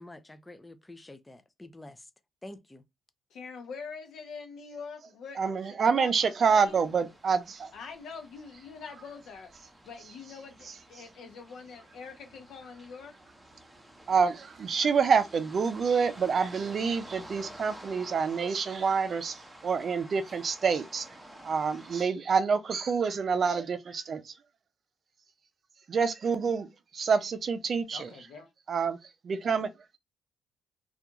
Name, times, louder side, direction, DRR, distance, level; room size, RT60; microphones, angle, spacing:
voice 1, 0.0-2.0 2.4-2.8, left 1 dB, 15° left, 0.4 m, -47 dB
voice 2, 3.3-5.5 5.9-6.8 7.7-13.1 27.9-28.5, left 5 dB, 75° left, 0.7 m, -44 dB
voice 3, 5.4-7.7 14.1-21.1 21.4-24.3 25.9-28.1 28.7-29.0 29.2-29.7, right 5 dB, 50° right, 0.4 m, -27 dB
sound 1, 6.7-22.0, right 1 dB, 10° right, 0.8 m, -51 dB
2.4 x 2.2 x 2.9 m
cardioid pair, 90°, 0 cm